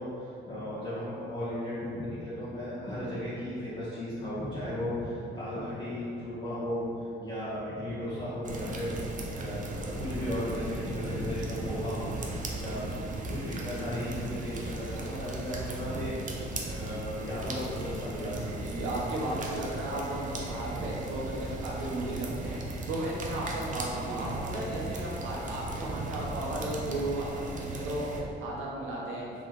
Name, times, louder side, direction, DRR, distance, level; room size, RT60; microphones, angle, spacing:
voice 1, 0.0-9.0 9.3-12.1 12.5-16.1 16.5-18.8, left 1 dB, 25° left, -12 dB, 1.0 m, -35 dB
sound 1, 8.4-28.2, right 2 dB, 40° right, 0.5 m, -37 dB
voice 2, 18.6-29.3, right 1 dB, 85° right, -4 dB, 0.9 m, -35 dB
3.1 x 3.0 x 3.9 m, 2.6 s
cardioid pair, 90°, 20 cm